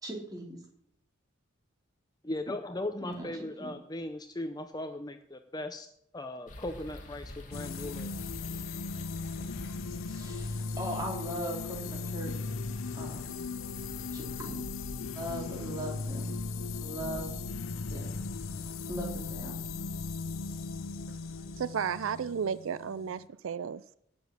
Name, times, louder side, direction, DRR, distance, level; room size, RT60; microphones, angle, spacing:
voice 1, 0.0-0.6 3.0-3.3 3.6-3.7 10.1-12.5 12.9-13.4 14.1-14.7 14.9-16.5 16.8-17.4 17.9-18.2 18.9-19.7, right 1 dB, 20° right, 3.7 m, -39 dB
voice 2, 2.2-5.9 6.1-8.1, left 1 dB, 20° left, 0.6 m, -38 dB
sound 1, 6.5-21.6, left 1 dB, 40° left, 2.1 m, -47 dB
sound 2, 7.5-23.3, left 4 dB, 80° left, 0.6 m, -38 dB
voice 3, 21.6-23.8, right 7 dB, 75° right, 0.4 m, -33 dB
17.5 x 7.1 x 6.4 m
head